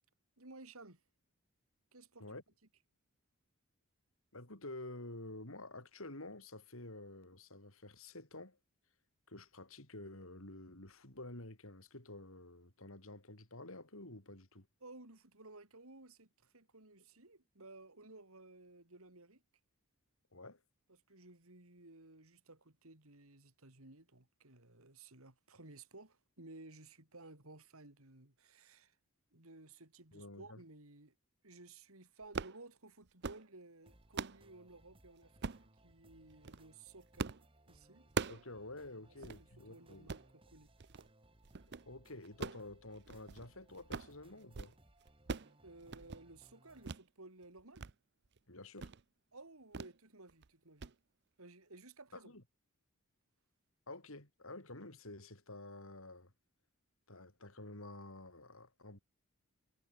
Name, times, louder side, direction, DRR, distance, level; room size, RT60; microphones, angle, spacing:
voice 1, 0.4-1.0 1.9-2.4 14.8-19.4 20.9-29.0 29.3-31.2 31.4-37.4 37.7-38.1 39.1-40.7 45.6-47.9 49.3-50.9 51.4-52.3, right 2 dB, 75° right, 3.6 m, -57 dB
voice 2, 4.3-8.6 9.3-14.7 20.3-20.6 30.1-30.6 38.2-40.1 41.7-44.7 48.5-48.9 52.1-52.4 53.9-56.3 57.1-59.0, left 2 dB, 65° left, 4.6 m, -50 dB
sound 1, 32.2-32.6 33.0-33.5 33.9-34.4 35.4-35.7 36.3-36.6 37.2-37.5 37.7-38.5 38.8-38.9 39.2-39.4 39.9-40.3 40.8-41.1 41.4-41.9 42.2-43.5 43.7-44.2 44.4-44.8 45.0-45.5 45.8-46.2 46.8-47.0 47.4-47.9 48.3-48.4 48.8-49.0 49.7-50.0 50.3-50.5 50.8-50.9, right 4 dB, 50° right, 0.7 m, -42 dB
sound 2, 33.8-46.9, right 1 dB, 25° right, 3.1 m, -66 dB
head